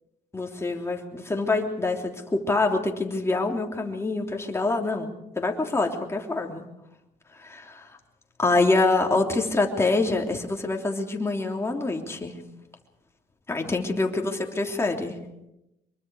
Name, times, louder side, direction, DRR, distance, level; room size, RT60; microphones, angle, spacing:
voice 1, 0.3-5.1 5.4-6.6 7.3-7.9 8.4-12.3 13.5-15.2, left 3 dB, 15° left, 2 dB, 3.2 m, -25 dB
25.0 x 23.0 x 4.9 m, 0.88 s
cardioid pair, 110°, 17 cm